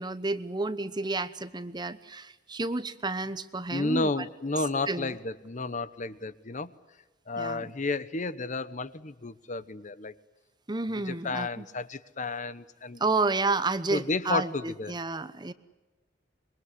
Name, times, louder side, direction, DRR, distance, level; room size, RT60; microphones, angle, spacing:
voice 1, 0.0-4.2 4.9-5.1 7.4-7.7 10.7-11.6 13.0-15.5, right 3 dB, 25° right, 13 dB, 1.0 m, -31 dB
voice 2, 3.7-6.7 7.3-10.2 10.9-13.0 13.9-15.0, left 3 dB, 40° left, 15 dB, 1.0 m, -32 dB
26.0 x 23.0 x 9.8 m, 1.1 s
head